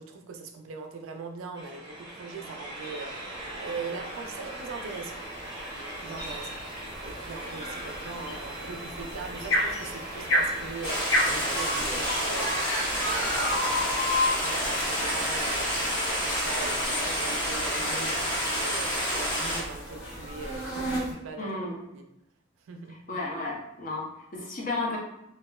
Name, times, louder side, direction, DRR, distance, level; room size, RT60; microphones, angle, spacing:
voice 1, 0.0-5.2 6.0-21.6 21.9-22.1 22.6-23.0, right 4 dB, 80° right, 5 dB, 0.4 m, -41 dB
sound 1, 1.6-19.3, right 1 dB, 20° right, 0.6 m, -38 dB
sound 2, 3.8-21.1, left 1 dB, 70° left, 1.1 m, -33 dB
Stream, 10.8-19.6, equal, 25° left, 0.9 m, -29 dB
voice 2, 21.4-21.8 23.1-25.0, left 2 dB, 40° left, -1 dB, 0.6 m, -33 dB
2.8 x 2.3 x 2.2 m, 0.82 s
head